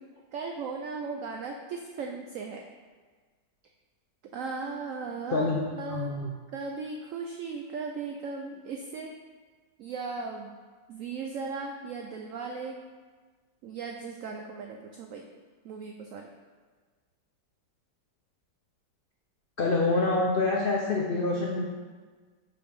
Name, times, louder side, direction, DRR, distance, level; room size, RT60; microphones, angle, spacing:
voice 1, 0.3-2.6 4.3-6.1 6.5-9.1 9.8-10.5 10.9-12.8 13.6-15.2 15.6-16.3, right 4 dB, 80° right, 2 dB, 0.7 m, -37 dB
voice 2, 5.3-6.3 19.6-21.6, left 3 dB, 70° left, -2 dB, 0.5 m, -26 dB
5.3 x 4.8 x 5.2 m, 1.4 s
omnidirectional pair, 1.9 m